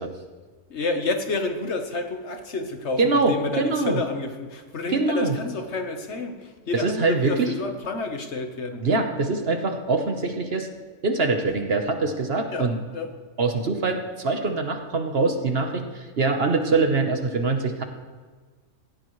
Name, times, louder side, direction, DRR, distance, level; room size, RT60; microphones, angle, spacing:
voice 1, 0.7-8.9 12.5-13.1, left 3 dB, 60° left, 6 dB, 1.4 m, -30 dB
voice 2, 3.0-4.0 4.9-5.4 6.7-7.5 8.8-10.7 11.0-12.8 13.4-17.8, right 3 dB, 50° right, 5 dB, 1.3 m, -23 dB
17.0 x 16.5 x 3.2 m, 1.4 s
omnidirectional pair, 1.3 m